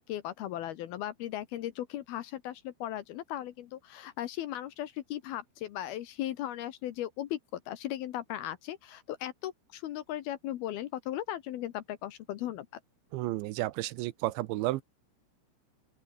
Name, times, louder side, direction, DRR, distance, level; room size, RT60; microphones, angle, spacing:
voice 1, 0.0-12.8, left 13 dB, 70° left, 2.6 m, -37 dB
voice 2, 13.1-14.8, right 17 dB, 90° right, 3.2 m, -32 dB
open air
omnidirectional pair, 5.3 m